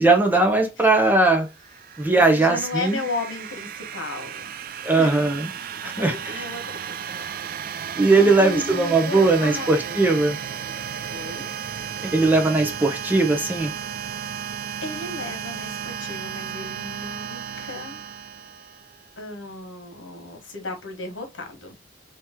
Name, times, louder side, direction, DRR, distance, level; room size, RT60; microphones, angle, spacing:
voice 1, 0.0-1.5 2.0-3.1 4.8-5.5 5.8-6.5 8.0-10.4 12.0-13.7, right 3 dB, 10° right, 0.8 m, -19 dB
sound 1, 1.5-19.1, right 8 dB, 50° right, 0.3 m, -34 dB
voice 2, 2.1-4.5 5.0-5.1 5.9-6.8 7.1-7.2 7.6-7.8 8.1-10.0 11.1-11.5 14.1-14.5 14.8-18.0 19.2-21.8, left 3 dB, 80° left, 1.3 m, -35 dB
3.0 x 3.0 x 3.5 m
head